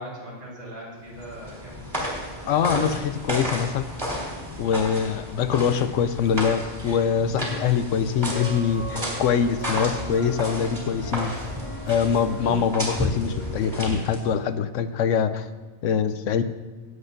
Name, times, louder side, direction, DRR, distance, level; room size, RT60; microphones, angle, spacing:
voice 1, 0.0-2.9, equal, 70° right, -7 dB, 4.4 m, -41 dB
sound 1, 1.1-14.4, equal, 25° right, 2.8 m, -32 dB
voice 2, 2.5-3.9 4.6-11.3 11.9-15.5 15.8-16.4, left 7 dB, 75° left, 11 dB, 0.9 m, -24 dB
sound 2, 8.1-13.9, right 2 dB, 50° right, 2.8 m, -38 dB
18.5 x 8.1 x 2.7 m, 1.3 s
omnidirectional pair, 1.3 m